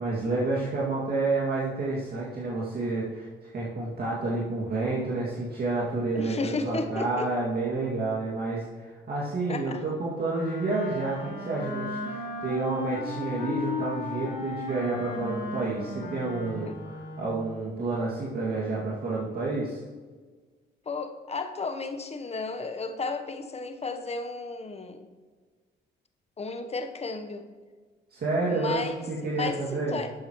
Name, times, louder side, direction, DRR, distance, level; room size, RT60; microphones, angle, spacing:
voice 1, 0.0-3.3 3.5-19.8 28.1-30.0, right 3 dB, 55° right, -6 dB, 2.3 m, -29 dB
voice 2, 6.1-7.3 9.5-9.8 16.7-16.8 20.9-25.1 26.4-27.5 28.5-28.9 29.2-30.1, left 3 dB, 35° left, 7 dB, 1.0 m, -33 dB
Wind instrument woodwind instrument, 10.2-17.5, left 3 dB, 80° left, 2.8 m, -35 dB
12.0 x 7.8 x 3.1 m, 1.4 s
supercardioid pair, 70°, 19 cm